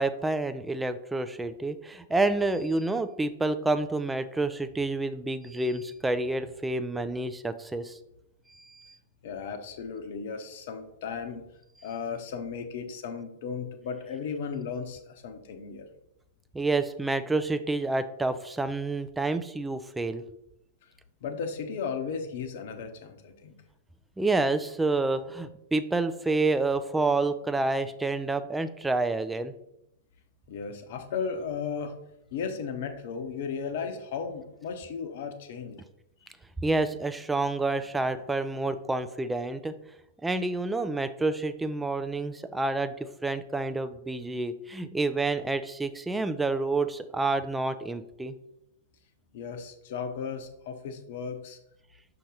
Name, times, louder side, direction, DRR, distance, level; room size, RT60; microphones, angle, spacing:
voice 1, 0.0-8.0 8.5-8.9 16.5-20.2 24.2-29.5 36.6-39.7 40.2-48.3, right 2 dB, 5° right, 10 dB, 0.4 m, -28 dB
voice 2, 9.2-11.4 11.8-15.9 21.2-23.5 30.5-32.0 32.3-35.8 36.2-36.3 49.3-51.6, left 6 dB, 55° left, 7 dB, 0.9 m, -35 dB
6.2 x 2.9 x 5.3 m, 0.83 s
figure-of-eight pair, 100°, 0 cm